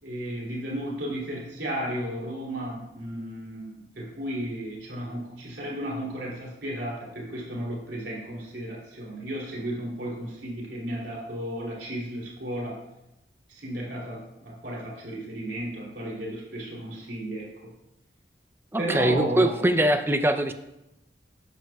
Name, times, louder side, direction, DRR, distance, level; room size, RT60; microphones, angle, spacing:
voice 1, 0.0-12.8 13.5-17.7 18.8-19.6, right 1 dB, 70° right, -4 dB, 2.8 m, -34 dB
voice 2, 18.7-20.5, right 1 dB, 10° right, 8 dB, 0.5 m, -22 dB
13.0 x 8.9 x 2.3 m, 0.89 s
head